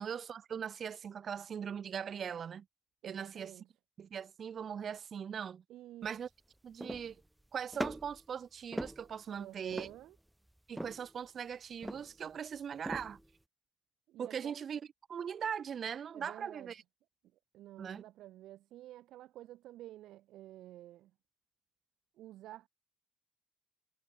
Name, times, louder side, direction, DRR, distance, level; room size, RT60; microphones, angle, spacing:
voice 1, 0.0-2.7 3.0-3.5 4.0-5.6 6.0-6.3 6.6-7.2 7.5-9.9 10.7-13.2 14.2-14.8 15.1-16.8 17.8-18.0, right 7 dB, 55° right, 0.4 m, -40 dB
voice 2, 3.0-3.7 5.7-6.2 9.3-10.2 14.1-14.5 16.1-16.7 17.5-21.1 22.1-22.7, right 14 dB, 85° right, 2.2 m, -51 dB
sound 1, 6.1-6.2 6.8-7.3 7.7-8.3 8.7-9.4 9.7-10.2 10.8-11.1 11.8-12.3 12.9-13.3, right 1 dB, 5° right, 0.6 m, -41 dB
cardioid pair, 90°, 0 cm